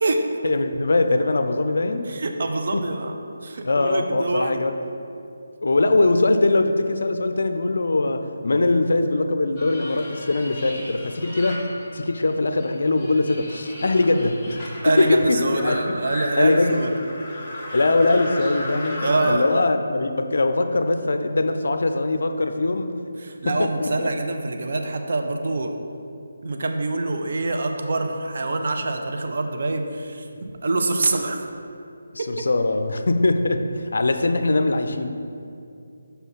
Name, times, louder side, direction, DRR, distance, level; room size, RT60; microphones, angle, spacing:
voice 1, 0.4-2.1 2.7-2.8 3.6-4.8 5.6-11.6 11.9-15.9 16.3-17.1 17.7-23.0 23.4-24.1 32.1-35.1, left 2 dB, 65° left, 7 dB, 0.4 m, -22 dB
voice 2, 2.1-3.1 3.4-4.6 14.8-16.9 19.0-19.6 23.2-25.7 26.4-31.4 32.4-32.5, right 2 dB, 55° right, 4 dB, 0.6 m, -25 dB
sound 1, 9.6-12.3 12.6-19.3, left 1 dB, 5° left, 1.5 m, -35 dB
5.6 x 4.0 x 5.7 m, 2.5 s
figure-of-eight pair, 155°, 0 cm